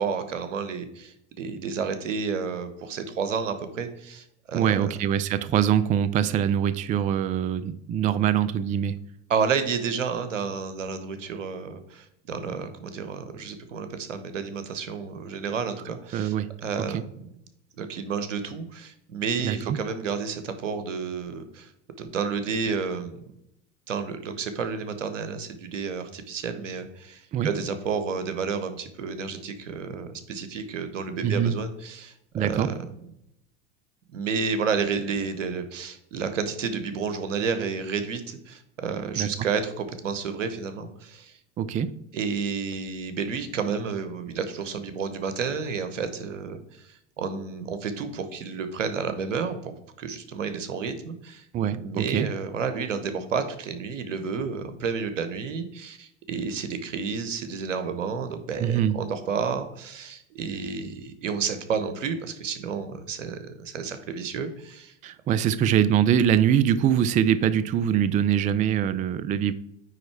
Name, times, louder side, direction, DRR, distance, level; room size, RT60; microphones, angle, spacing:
voice 1, 0.0-4.9 9.3-16.3 16.6-17.1 17.8-21.7 22.0-23.3 23.9-32.7 34.1-41.4 42.1-51.5 51.8-64.9, right 5 dB, 90° right, 9 dB, 1.0 m, -31 dB
voice 2, 4.5-9.0 16.1-16.5 16.8-17.0 19.4-19.8 27.3-27.5 31.2-31.6 32.3-32.7 39.2-39.3 41.6-41.9 51.5-52.3 58.6-59.0 65.0-69.5, right 9 dB, 20° right, 14 dB, 0.3 m, -23 dB
9.3 x 3.2 x 4.7 m, 0.78 s
hypercardioid pair, 90°, 36 cm